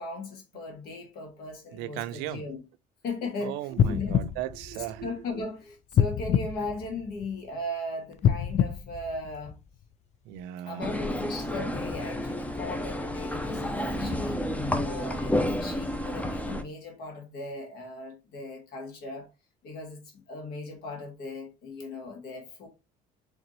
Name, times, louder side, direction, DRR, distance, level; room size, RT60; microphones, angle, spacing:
voice 1, 0.0-2.6 3.0-3.6 3.8-4.2 5.0-9.6 10.6-14.4 14.8-19.3 19.6-22.7, left 2 dB, 70° left, 1.5 m, -37 dB
voice 2, 1.7-2.5 3.4-5.1 10.3-11.0, right 13 dB, 85° right, 0.4 m, -36 dB
sound 1, 3.7-5.4 5.9-7.5 8.1-9.8 10.4-10.5, left 9 dB, 45° left, 0.4 m, -27 dB
sound 2, 10.8-16.6, left 1 dB, 10° left, 0.6 m, -30 dB
3.9 x 3.3 x 3.1 m
supercardioid pair, 95°, 17 cm